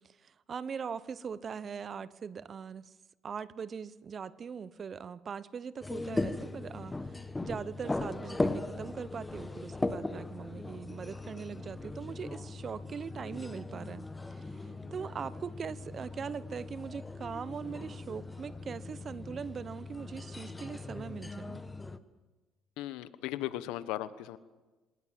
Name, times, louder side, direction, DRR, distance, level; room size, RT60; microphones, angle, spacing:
voice 1, 0.0-2.9 3.2-21.6, right 6 dB, 45° right, 18 dB, 0.9 m, -41 dB
sound 1, 5.8-22.0, left 2 dB, 15° left, 1.3 m, -39 dB
voice 2, 22.8-24.4, left 14 dB, 85° left, 14 dB, 1.1 m, -37 dB
25.5 x 18.5 x 7.7 m, 1.2 s
supercardioid pair, 75°, 0 cm